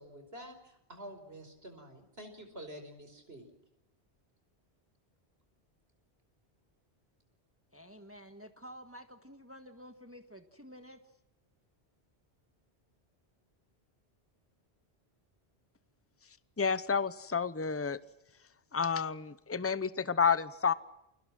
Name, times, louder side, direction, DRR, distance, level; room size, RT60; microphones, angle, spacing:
voice 1, 0.0-3.5, equal, 65° right, 5.4 m, -48 dB
voice 2, 7.7-11.0, equal, 15° right, 1.6 m, -51 dB
voice 3, 16.6-18.0 18.7-20.7, left 6 dB, 15° left, 0.8 m, -30 dB
29.0 x 24.5 x 6.1 m
omnidirectional pair, 1.1 m